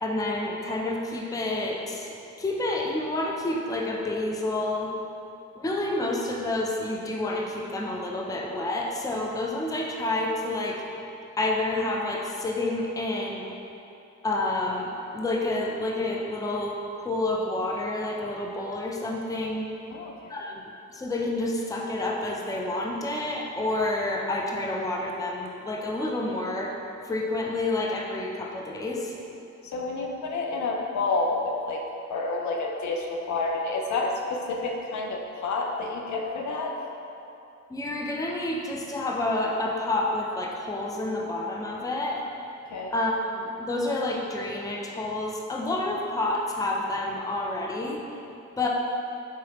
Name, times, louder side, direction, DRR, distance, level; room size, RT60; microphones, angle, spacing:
voice 1, 0.0-4.9 5.6-10.8 11.4-13.6 14.2-19.7 20.3-20.6 20.9-26.8 27.0-29.1 37.7-42.3 42.9-48.0 48.6-48.7, left 2 dB, 10° left, -1 dB, 0.4 m, -29 dB
voice 2, 29.6-31.8 32.1-36.7 42.7-42.9, left 3 dB, 65° left, 1 dB, 0.5 m, -29 dB
4.6 x 3.2 x 2.9 m, 2.8 s
cardioid pair, 75°, 31 cm